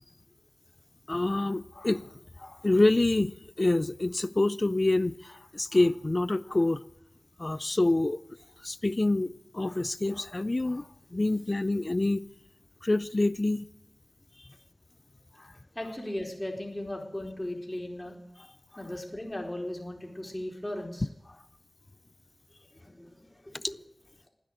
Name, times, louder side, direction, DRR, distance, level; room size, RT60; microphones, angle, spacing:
voice 1, 1.1-2.1 2.4-6.8 7.4-8.2 8.6-12.3 12.8-13.7 14.4-14.5 15.4-15.5 23.5-23.6, left 2 dB, 40° left, 0.4 m, -27 dB
voice 2, 15.7-18.1 18.8-21.1 22.7-23.7, left 1 dB, 15° left, 4.2 m, -37 dB
15.5 x 10.0 x 7.8 m
wide cardioid pair, 45°, 0 cm